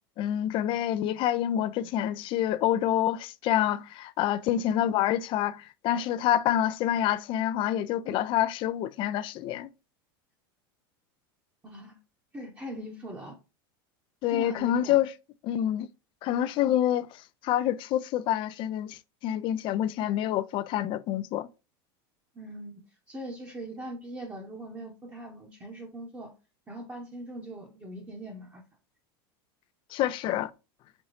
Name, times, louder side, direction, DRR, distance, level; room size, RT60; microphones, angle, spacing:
voice 1, 0.2-9.7 14.2-15.1 15.4-15.9 16.2-21.5 29.9-30.5, left 11 dB, 45° left, 0.4 m, -27 dB
voice 2, 11.6-12.0 12.3-13.4 14.3-15.0 22.3-22.8 23.1-26.3 26.7-28.6, right 1 dB, 20° right, 0.9 m, -41 dB
4.2 x 2.6 x 3.1 m
supercardioid pair, 115°, 12 cm